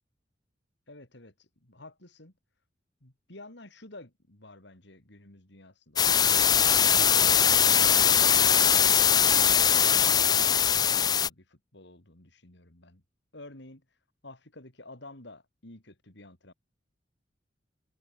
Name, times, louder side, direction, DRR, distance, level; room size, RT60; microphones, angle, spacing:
voice 1, 0.9-2.3 3.0-6.7 10.0-13.0 13.3-13.8 14.2-16.5, left 2 dB, 65° left, 4.4 m, -50 dB
sound 1, 6.0-11.3, left 8 dB, 20° left, 0.3 m, -21 dB
head